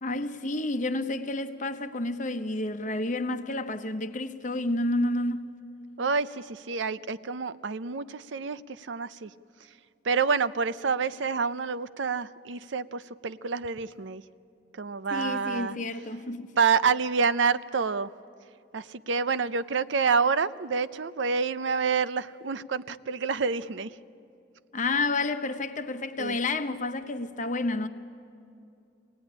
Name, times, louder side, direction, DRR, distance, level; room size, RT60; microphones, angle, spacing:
voice 1, 0.0-5.4 15.1-16.5 24.7-27.9, left 2 dB, 40° left, 1.0 m, -30 dB
voice 2, 6.0-9.3 10.0-14.2 14.7-15.8 16.6-18.1 18.7-24.0 26.2-26.4, right 5 dB, 75° right, 0.6 m, -28 dB
25.5 x 18.0 x 9.9 m
head